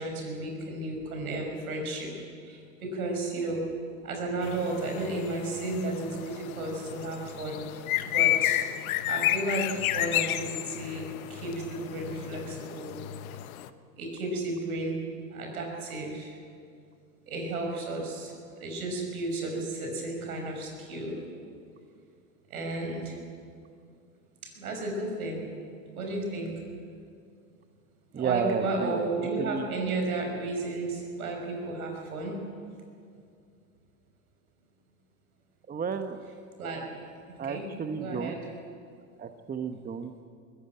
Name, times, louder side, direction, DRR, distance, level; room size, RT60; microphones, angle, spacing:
voice 1, 0.0-2.1 2.4-3.6 4.0-7.6 8.0-8.6 9.1-13.0 14.0-15.0 15.3-16.4 17.3-18.3 18.6-21.2 22.5-23.2 24.4-25.4 25.9-26.5 28.1-32.4 36.6-36.9 37.3-37.7 37.9-38.4, right 2 dB, 85° right, 1 dB, 6.0 m, -33 dB
sound 1, 4.4-13.7, left 13 dB, 75° left, 1.1 m, -31 dB
voice 2, 28.1-29.1 29.4-29.7 35.7-36.2 37.4-38.4 39.2-40.1, right 6 dB, 20° right, 8 dB, 1.1 m, -32 dB
21.5 x 15.0 x 9.1 m, 2.3 s
hypercardioid pair, 100°, 42 cm